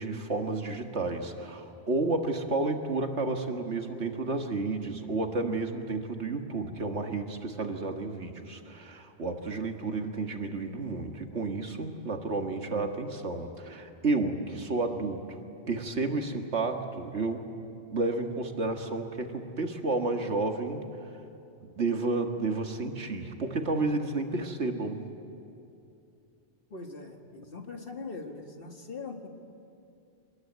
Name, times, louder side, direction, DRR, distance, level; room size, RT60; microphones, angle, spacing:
voice 1, 0.0-15.4 15.7-17.5 17.9-20.8 21.6-25.0, right 3 dB, 65° right, 4 dB, 2.0 m, -31 dB
voice 2, 26.7-29.3, left 3 dB, 50° left, 3 dB, 2.1 m, -41 dB
26.0 x 21.0 x 9.3 m, 2.7 s
omnidirectional pair, 1.2 m